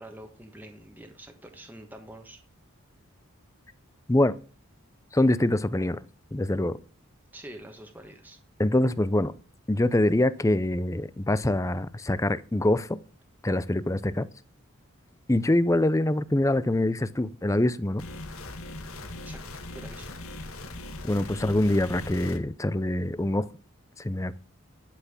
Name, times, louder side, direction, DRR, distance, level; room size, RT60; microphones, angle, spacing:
voice 1, 0.0-2.4 7.3-8.4 19.2-20.1, right 1 dB, 10° right, 1.3 m, -46 dB
voice 2, 5.1-6.0 6.3-6.8 8.6-9.3 9.7-13.0 13.4-14.2 15.3-18.0 21.0-23.5 24.0-24.4, left 1 dB, 15° left, 0.5 m, -24 dB
sound 1, 18.0-22.4, left 2 dB, 80° left, 1.9 m, -40 dB
12.0 x 5.8 x 7.2 m
head